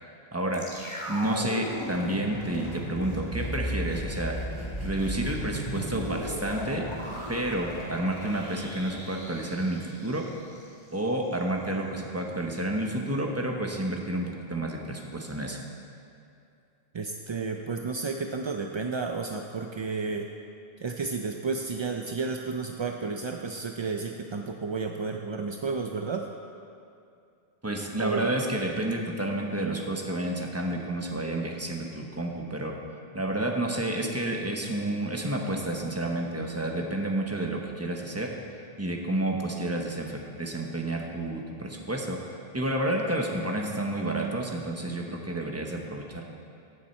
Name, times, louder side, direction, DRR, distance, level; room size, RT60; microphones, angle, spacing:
voice 1, 0.3-0.6 1.1-4.3 4.8-6.9 7.3-10.3 10.9-15.6 27.6-32.7 33.1-38.3 38.8-42.2 42.5-46.2, right 1 dB, 15° right, 1 dB, 1.0 m, -30 dB
sound 1, 0.5-10.7 10.9-11.0, equal, 25° left, 2.1 m, -36 dB
voice 2, 16.9-20.3 20.8-26.3 28.0-28.3, right 4 dB, 45° right, 3 dB, 0.3 m, -32 dB
15.5 x 7.3 x 4.4 m, 2.5 s
omnidirectional pair, 1.1 m